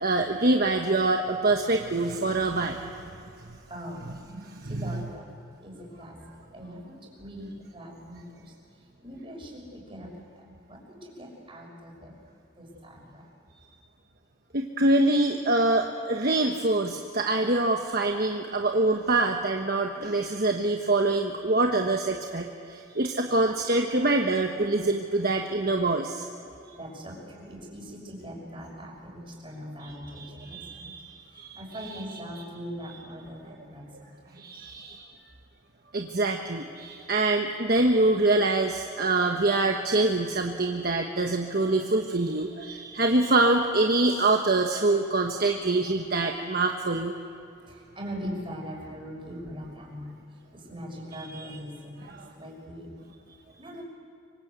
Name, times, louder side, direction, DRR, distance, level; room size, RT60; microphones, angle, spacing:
voice 1, 0.0-2.8 4.3-5.0 14.5-26.3 29.8-31.6 31.9-32.0 34.4-35.1 35.9-47.1 51.3-51.6 52.1-52.3, right 2 dB, 50° right, 3 dB, 1.3 m, -25 dB
voice 2, 3.7-4.2 4.6-5.3 5.6-6.2 6.5-8.5 9.0-10.1 10.3-12.1 12.6-13.3 26.7-30.9 31.5-34.7 47.7-50.2 50.5-53.0 53.6-53.9, equal, 25° right, -1 dB, 6.1 m, -41 dB
25.5 x 25.0 x 8.2 m, 2.7 s
head